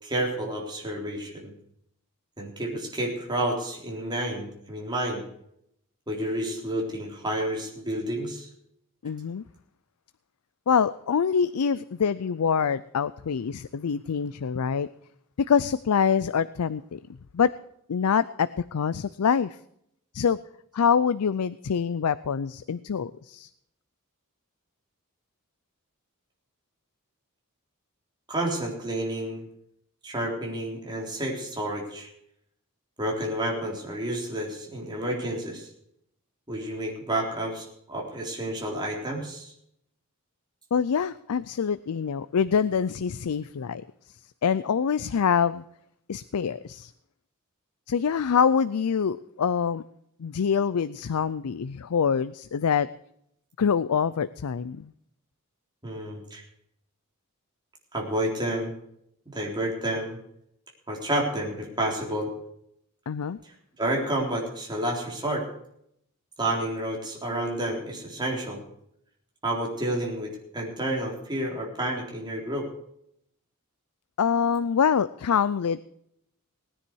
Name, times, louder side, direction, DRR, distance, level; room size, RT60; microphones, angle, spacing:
voice 1, 0.0-1.5 2.4-5.2 6.1-8.5 28.3-29.5 30.0-32.1 33.0-35.7 36.5-39.5 55.8-56.4 57.9-58.7 59.3-60.2 60.9-62.3 63.8-65.5 66.4-68.6 69.4-72.7, right 1 dB, 20° right, -1 dB, 3.7 m, -30 dB
voice 2, 9.0-9.4 10.7-14.9 15.5-17.0 17.3-17.5 17.9-19.6 20.1-20.4 20.7-23.5 40.7-43.8 44.4-45.6 46.1-46.9 47.9-49.8 50.2-52.9 53.6-54.9 63.1-63.4 74.2-75.8, left 6 dB, 85° left, 16 dB, 0.5 m, -25 dB
19.0 x 10.0 x 4.6 m, 0.73 s
head